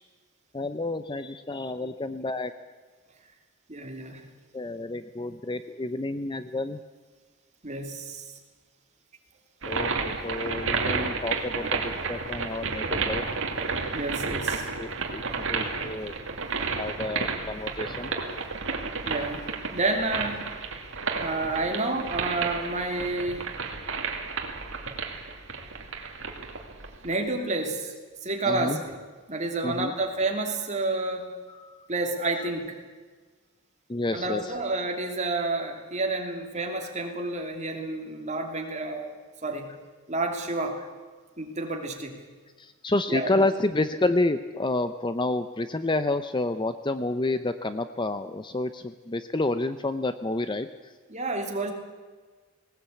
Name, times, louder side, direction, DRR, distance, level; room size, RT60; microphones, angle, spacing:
voice 1, 0.5-2.5 4.5-6.8 9.7-9.9 10.2-13.2 14.8-16.1 16.8-18.1 28.5-28.8 29.6-29.9 31.5-31.9 33.9-34.6 38.6-38.7 42.6-50.7, left 2 dB, 20° left, 11 dB, 0.6 m, -29 dB
voice 2, 3.7-4.2 7.6-8.3 13.9-14.7 19.0-20.5 21.2-23.5 27.0-27.9 28.2-29.0 29.3-31.3 31.9-32.8 34.1-39.1 39.4-39.7 40.1-40.8 41.4-42.2 43.1-43.3 51.1-51.7, right 2 dB, 30° right, 2 dB, 3.0 m, -30 dB
sound 1, 9.6-27.1, right 4 dB, 60° right, 2.4 m, -32 dB
19.0 x 19.0 x 8.4 m, 1.4 s
head